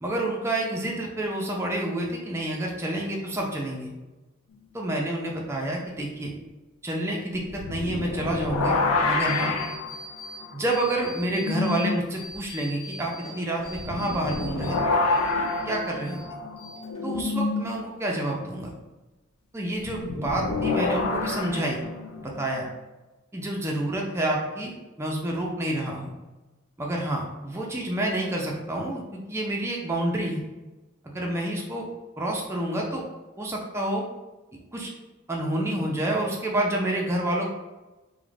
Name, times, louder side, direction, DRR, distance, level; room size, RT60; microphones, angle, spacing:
voice 1, 0.0-3.9 4.7-6.3 6.8-9.6 10.5-15.0 15.7-16.2 17.0-18.7 19.5-21.8 22.2-22.7 23.3-24.7 25.0-26.1 26.8-30.4 31.1-31.9 32.2-33.0 33.4-34.1 34.7-34.9 35.3-37.5, right 1 dB, 15° right, -1 dB, 0.3 m, -28 dB
sound 1, 7.5-12.0 12.3-12.4 13.7-17.7 19.8-22.7, left 3 dB, 80° left, 0.3 m, -28 dB
sound 2, 9.2-10.4 10.7-11.8 12.2-14.8 15.1-16.2 16.6-17.2, left 2 dB, 35° left, 0.9 m, -42 dB
2.4 x 2.0 x 3.1 m, 1.1 s
head